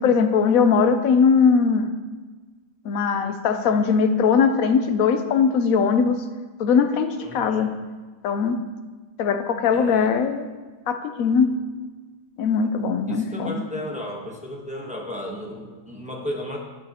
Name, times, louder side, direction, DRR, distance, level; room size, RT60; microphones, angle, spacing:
voice 1, 0.0-1.9 2.8-6.2 6.6-7.7 8.2-8.6 9.2-10.5 10.9-11.5 12.4-13.6, left 6 dB, 85° left, 8 dB, 1.1 m, -20 dB
voice 2, 7.2-7.7 9.7-10.1 13.1-16.6, equal, 5° right, -1 dB, 1.0 m, -34 dB
11.0 x 9.1 x 2.9 m, 1.3 s
omnidirectional pair, 1.4 m